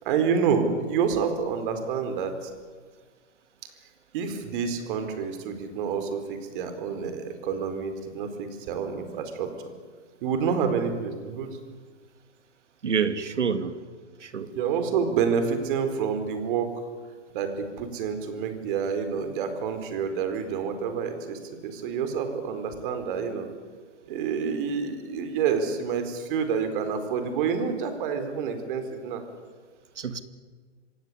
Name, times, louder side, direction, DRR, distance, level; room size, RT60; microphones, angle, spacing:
voice 1, 0.0-2.5 4.1-9.7 10.2-11.5 14.5-16.8 17.3-23.5 24.0-29.2, right 6 dB, 45° right, 8 dB, 4.5 m, -28 dB
voice 2, 12.8-13.7 14.2-14.5 30.0-30.2, right 6 dB, 80° right, 11 dB, 2.3 m, -27 dB
26.5 x 17.0 x 9.9 m, 1.6 s
hypercardioid pair, 130°, 36 cm